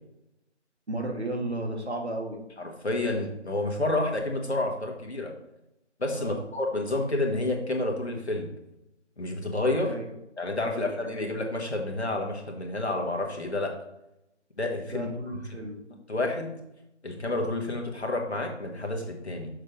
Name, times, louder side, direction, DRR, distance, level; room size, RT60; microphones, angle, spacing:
voice 1, 0.9-2.4 6.1-6.5 9.8-10.0 10.7-10.9 14.9-15.8, right 1 dB, 65° right, 3 dB, 1.4 m, -34 dB
voice 2, 2.6-5.3 6.0-8.5 9.2-9.9 10.4-13.7 14.6-15.1 16.1-16.5 17.0-19.5, left 2 dB, 60° left, 1 dB, 1.4 m, -29 dB
6.4 x 3.1 x 5.1 m, 0.86 s
figure-of-eight pair, 170°, 36 cm